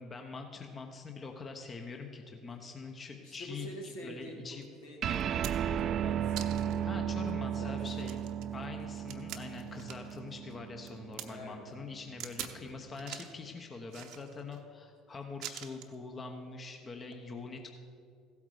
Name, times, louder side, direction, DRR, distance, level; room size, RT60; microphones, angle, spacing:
voice 1, 0.0-4.6 6.8-8.2 8.5-17.7, left 4 dB, 35° left, 4 dB, 1.0 m, -44 dB
voice 2, 3.2-4.6 4.8-5.3 5.6-8.1 11.3-11.6, left 1 dB, 80° left, -1 dB, 2.3 m, -46 dB
sound 1, 4.6-4.7 5.1-5.8 6.4-6.8 7.3-7.4 7.8-10.2 10.5-11.3 12.2-12.6 12.9-13.4 13.9-14.6 15.4-15.9 17.0-17.2, right 11 dB, 65° right, 0.8 m, -44 dB
sound 2, 5.0-11.8, right 9 dB, 50° right, 0.3 m, -35 dB
15.0 x 8.5 x 5.0 m, 2.5 s
hypercardioid pair, 75°, 0 cm